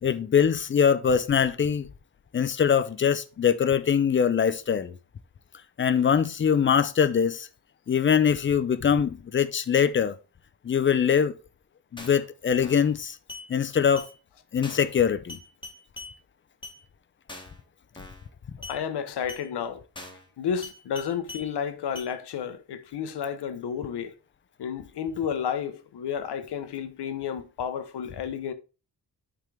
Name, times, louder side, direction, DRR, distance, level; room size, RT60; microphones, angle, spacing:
voice 1, 0.0-1.9 2.3-4.9 5.8-7.5 7.9-10.2 10.6-11.4 11.9-13.2 13.5-14.1 14.5-15.4, left 7 dB, 30° left, 0.4 m, -23 dB
sound 1, 12.0-12.3 12.6-12.9 13.3-13.5 14.0-14.1 14.6-14.9 15.3-16.1 16.6-16.8 17.3-17.6 18.0-18.3 18.6-18.8 19.3-19.5 20.0-20.3 20.6-21.5 22.0-22.1, left 2 dB, 10° left, 1.1 m, -42 dB
voice 2, 18.6-19.8 20.4-24.1 24.6-28.5, left 8 dB, 75° left, 0.8 m, -31 dB
9.0 x 3.7 x 3.3 m
wide cardioid pair, 135°, 40 cm